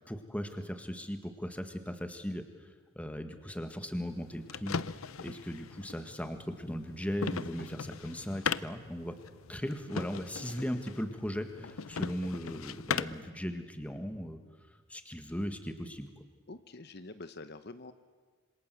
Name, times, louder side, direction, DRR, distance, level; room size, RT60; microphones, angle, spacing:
voice 1, 0.0-2.4 3.0-4.8 5.2-9.2 9.5-14.4 14.9-16.1, equal, 5° left, 7 dB, 1.8 m, -37 dB
sound 1, 4.1-13.3, left 6 dB, 80° left, 0.7 m, -39 dB
voice 2, 16.5-17.9, left 2 dB, 50° left, 10 dB, 0.9 m, -46 dB
27.0 x 26.0 x 7.8 m, 1.5 s
head